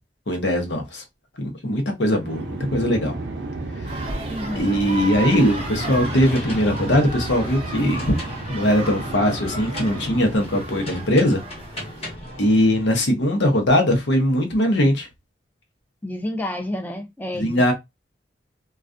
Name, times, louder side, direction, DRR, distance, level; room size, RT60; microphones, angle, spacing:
voice 1, 0.3-1.0 1.4-3.2 3.9-4.1 4.6-8.1 8.5-11.4 12.4-15.1 17.4-17.7, left 1 dB, 80° left, 0.8 m, -20 dB
sound 1, 2.1-11.1, right 2 dB, 80° right, 0.5 m, -33 dB
sound 2, 3.8-12.1, right 2 dB, 30° right, 0.6 m, -35 dB
voice 2, 4.3-4.7 16.0-17.7, left 1 dB, 10° left, 0.4 m, -30 dB
sound 3, 4.8-12.9, equal, 35° left, 0.9 m, -37 dB
2.3 x 2.3 x 2.4 m
head